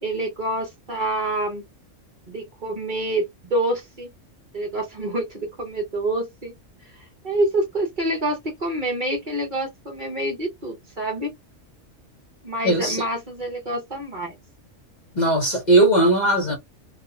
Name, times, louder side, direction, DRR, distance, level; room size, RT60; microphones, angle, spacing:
voice 1, 0.0-1.6 2.3-4.1 4.5-6.5 7.2-11.3 12.4-14.4, right 1 dB, 40° right, 1.0 m, -27 dB
voice 2, 12.6-13.0 15.2-16.6, right 2 dB, 40° left, 0.8 m, -18 dB
2.7 x 2.4 x 2.3 m
omnidirectional pair, 1.4 m